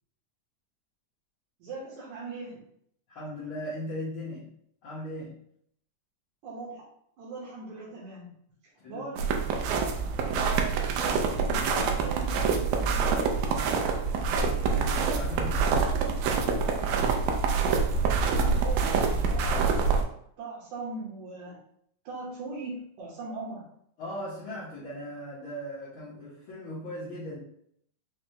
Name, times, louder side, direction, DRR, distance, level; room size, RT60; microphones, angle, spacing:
voice 1, 1.6-2.6 5.2-5.3 6.4-6.8 7.2-8.3 8.9-9.4 10.3-11.2 11.5-13.2 18.1-19.7 20.4-21.6 22.0-23.7, right 3 dB, 70° right, -6 dB, 2.2 m, -40 dB
voice 2, 3.1-4.5 4.8-5.4 8.8-9.1 11.0-11.4 14.6-15.7 24.0-27.4, left 1 dB, 80° left, -8 dB, 1.1 m, -38 dB
sound 1, 9.2-20.0, right 5 dB, 90° right, 2.2 m, -26 dB
6.1 x 2.2 x 2.7 m, 0.69 s
omnidirectional pair, 3.7 m